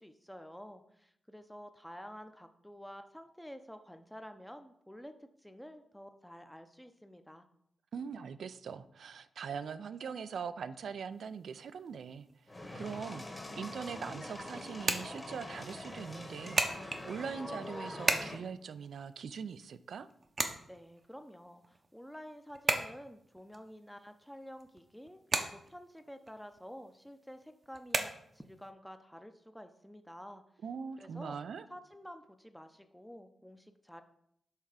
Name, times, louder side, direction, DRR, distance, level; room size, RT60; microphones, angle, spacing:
voice 1, 0.0-7.4 20.7-30.4 31.0-31.4 31.7-34.0, equal, 5° left, 8 dB, 0.6 m, -50 dB
voice 2, 7.9-12.3 12.7-20.1 30.6-31.7, right 6 dB, 75° right, 13 dB, 0.3 m, -42 dB
sound 1, 11.1-28.7, right 3 dB, 50° right, 0.7 m, -39 dB
sound 2, 12.5-18.4, left 1 dB, 25° left, 1.3 m, -44 dB
5.6 x 3.4 x 4.9 m, 0.72 s
cardioid pair, 55°, 0 cm